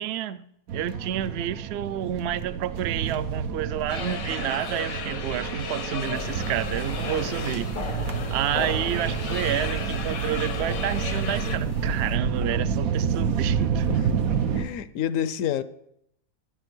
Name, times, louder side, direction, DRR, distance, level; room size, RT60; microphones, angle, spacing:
voice 1, 0.0-13.9, right 10 dB, 65° right, 0.7 m, -30 dB
sound 1, 0.7-14.6, right 6 dB, 85° right, 1.3 m, -29 dB
sound 2, 3.9-11.6, left 6 dB, 90° left, 1.5 m, -36 dB
sound 3, 6.1-12.2, left 5 dB, 50° left, 0.4 m, -38 dB
voice 2, 14.5-15.6, left 9 dB, 75° left, 1.0 m, -28 dB
12.0 x 8.1 x 6.1 m
omnidirectional pair, 1.4 m